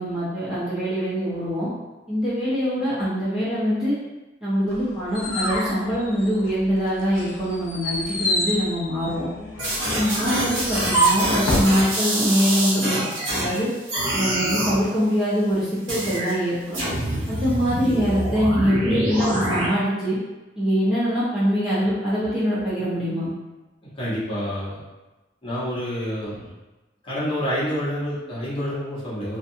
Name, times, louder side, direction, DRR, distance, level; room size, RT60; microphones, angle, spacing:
voice 1, 0.0-1.7 2.1-4.0 4.4-9.3 9.8-13.0 13.3-13.7 14.1-16.8 17.3-20.2 20.6-23.3, equal, 5° right, -12 dB, 0.7 m, -23 dB
sound 1, 4.7-6.7 7.1-11.8, right 1 dB, 85° left, 0.6 m, -26 dB
sound 2, 9.6-13.6 13.9-14.8 15.9-16.3 16.7-19.7, right 1 dB, 75° right, 1.0 m, -26 dB
voice 2, 23.9-24.8 25.4-26.5 27.0-29.4, equal, 25° left, -10 dB, 0.8 m, -28 dB
2.7 x 2.2 x 2.6 m, 1.1 s
head